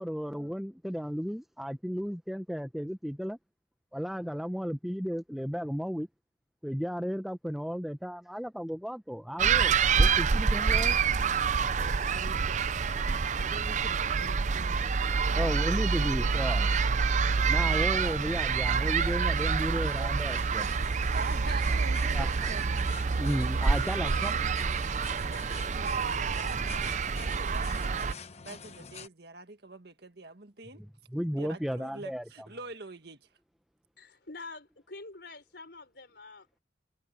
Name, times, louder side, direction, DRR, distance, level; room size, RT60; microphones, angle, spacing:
voice 1, 0.0-3.4 3.9-6.1 6.6-10.9 15.3-16.7 17.5-20.7 22.1-22.3 23.2-24.3 31.1-32.2, equal, ahead, 0.8 m, -34 dB
sound 1, 9.4-28.1, right 5 dB, 40° right, 0.5 m, -27 dB
voice 2, 12.1-12.6 13.3-15.5 16.2-16.8 21.1-22.7 23.1-24.6 25.3-30.8 31.3-33.3, right 2 dB, 60° right, 1.8 m, -46 dB
sound 2, 17.6-29.1, left 5 dB, 35° left, 0.9 m, -48 dB
voice 3, 34.0-36.6, left 3 dB, 60° left, 5.2 m, -46 dB
head